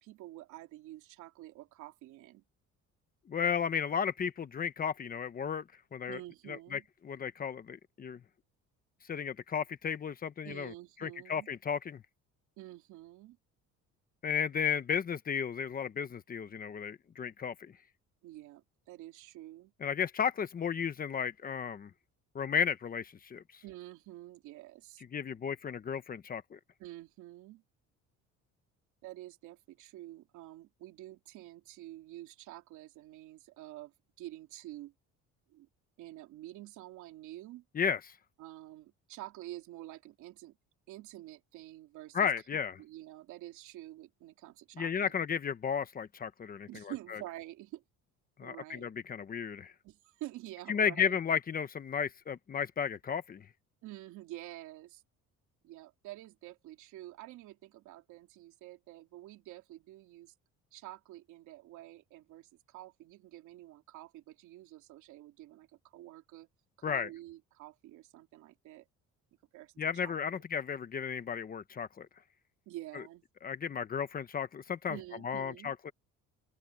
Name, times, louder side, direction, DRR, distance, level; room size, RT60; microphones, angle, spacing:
voice 1, 0.0-2.4 6.1-6.9 10.4-11.5 12.6-13.4 18.2-19.7 23.6-25.0 26.8-27.6 29.0-34.9 35.5-35.7 36.0-37.6 38.4-40.6 40.9-45.1 46.7-47.8 48.4-48.9 49.8-51.2 53.8-55.0 55.6-60.3 60.7-65.7 65.9-66.5 66.8-68.9 69.5-69.7 70.0-70.4 72.7-73.2 74.9-75.7, right 16 dB, 80° right, 3.1 m, -48 dB
voice 2, 3.3-5.6 5.9-6.2 6.5-8.2 9.1-10.7 11.0-12.0 14.2-17.7 19.8-21.9 22.3-23.4 25.1-26.6 37.7-38.0 42.1-42.8 44.8-46.8 48.4-49.7 50.7-53.4 66.8-67.1 69.8-72.1 73.4-75.0 75.2-75.9, left 7 dB, 30° left, 1.0 m, -34 dB
cardioid pair, 145°, 29 cm